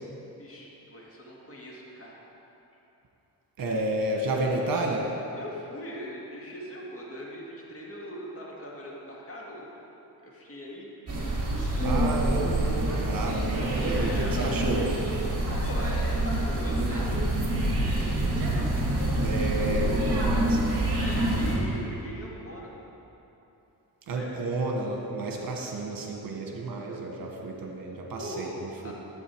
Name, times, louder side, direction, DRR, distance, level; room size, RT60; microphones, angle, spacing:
voice 1, 0.4-2.3 5.4-9.8 10.2-10.9 13.9-14.7 15.6-18.4 19.5-20.3 21.0-22.7 24.1-24.3 28.2-28.9, equal, 35° left, -3 dB, 2.0 m, -41 dB
voice 2, 3.6-5.1 11.8-14.8 18.8-18.9 19.2-20.9 24.1-28.9, right 2 dB, 60° right, 0 dB, 1.5 m, -31 dB
sound 1, 11.1-21.6, right 1 dB, 40° right, 2.4 m, -26 dB
11.0 x 8.1 x 4.7 m, 3.0 s
cardioid pair, 120°, 39 cm